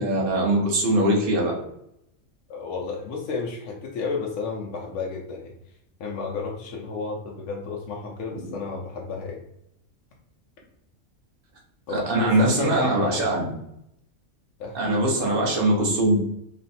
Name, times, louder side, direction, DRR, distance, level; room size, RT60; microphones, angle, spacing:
voice 1, 0.0-1.5 11.9-13.5 14.7-16.2, right 1 dB, 45° right, -2 dB, 1.0 m, -22 dB
voice 2, 2.5-5.5 6.0-9.4 11.9-13.3 14.6-15.2, left 4 dB, 65° left, -1 dB, 0.9 m, -32 dB
3.2 x 2.3 x 4.1 m, 0.78 s
omnidirectional pair, 1.4 m